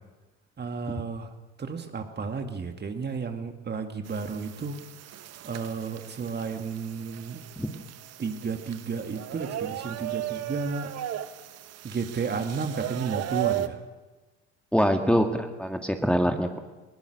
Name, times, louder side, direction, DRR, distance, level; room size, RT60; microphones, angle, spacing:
voice 1, 0.6-1.3 1.6-4.8 5.4-7.4 8.2-10.9 11.8-13.8, right 5 dB, 30° right, 6 dB, 2.2 m, -32 dB
sound 1, 4.1-13.7, right 12 dB, 50° right, 1.2 m, -36 dB
voice 2, 14.7-16.6, equal, 5° left, 5 dB, 2.1 m, -24 dB
21.0 x 20.0 x 6.7 m, 1.2 s
hypercardioid pair, 65°, 33 cm